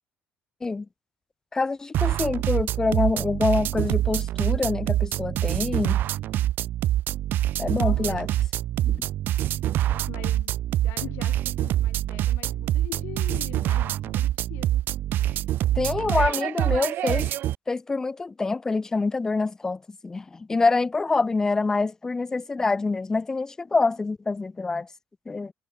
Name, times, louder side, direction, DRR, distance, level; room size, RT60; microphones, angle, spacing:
voice 1, 1.5-6.0 7.6-8.3 8.8-9.0 15.8-17.3 17.7-24.9 25.3-25.5, left 3 dB, 15° left, 0.4 m, -26 dB
sound 1, 1.9-17.6, right 13 dB, 55° right, 1.2 m, -25 dB
voice 2, 7.7-8.3 9.9-15.6 16.0-16.8, left 19 dB, 80° left, 3.2 m, -43 dB
cardioid pair, 150°, 4 cm